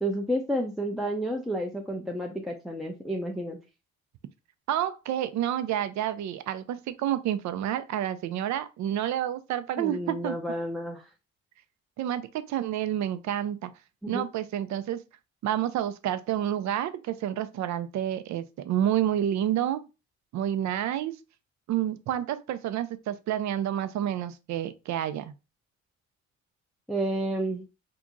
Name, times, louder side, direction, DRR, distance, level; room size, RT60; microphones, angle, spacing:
voice 1, 0.0-3.6 9.8-11.1 14.0-14.3 26.9-27.6, right 1 dB, ahead, 0.5 m, -30 dB
voice 2, 4.7-10.3 12.0-13.7 14.1-15.0 15.4-19.8 20.3-21.1 21.7-25.3, right 11 dB, 70° right, 0.5 m, -29 dB
2.8 x 2.5 x 3.6 m
cardioid pair, 90°, 30 cm